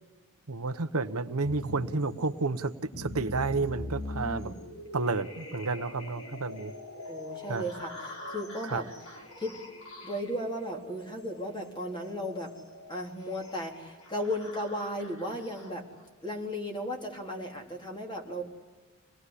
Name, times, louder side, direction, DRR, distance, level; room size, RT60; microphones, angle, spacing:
voice 1, 0.5-4.5 4.9-6.7 7.5-7.6 8.6-8.8, right 3 dB, 80° right, 10 dB, 1.0 m, -31 dB
sound 1, 1.4-16.1, left 1 dB, 75° left, 5.2 m, -44 dB
voice 2, 4.2-4.6 7.1-8.9 9.4-9.6 10.0-12.5 12.9-15.9 16.2-18.4, equal, 20° left, 1 dB, 3.8 m, -35 dB
26.0 x 20.0 x 9.9 m, 1.3 s
head